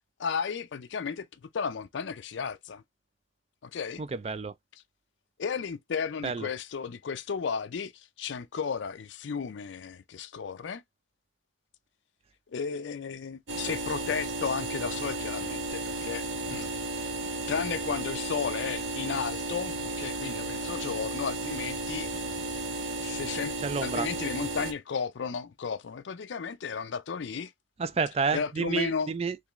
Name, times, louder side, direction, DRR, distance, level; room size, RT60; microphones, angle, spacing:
voice 1, 0.2-1.3 1.5-2.8 3.6-4.0 5.4-10.8 12.5-17.1 17.5-22.1 23.0-23.5 23.8-27.5 28.3-29.1, left 6 dB, 65° left, 0.4 m, -34 dB
voice 2, 4.0-4.5 6.2-6.5 23.6-24.1 27.8-29.4, right 5 dB, 30° right, 0.3 m, -30 dB
sound 1, 13.5-24.7, right 2 dB, 75° right, 1.1 m, -34 dB
3.6 x 3.0 x 3.0 m
head